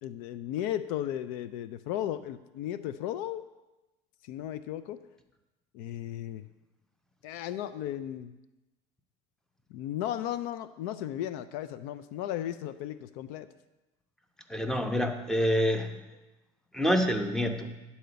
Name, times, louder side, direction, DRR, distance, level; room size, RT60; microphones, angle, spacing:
voice 1, 0.0-3.4 4.2-5.0 5.7-6.4 7.2-8.3 9.7-13.5, left 11 dB, 75° left, 13 dB, 0.4 m, -35 dB
voice 2, 14.5-15.9 16.7-17.7, equal, 5° left, 5 dB, 0.9 m, -27 dB
10.5 x 4.3 x 6.8 m, 1.0 s
supercardioid pair, 110°, 15 cm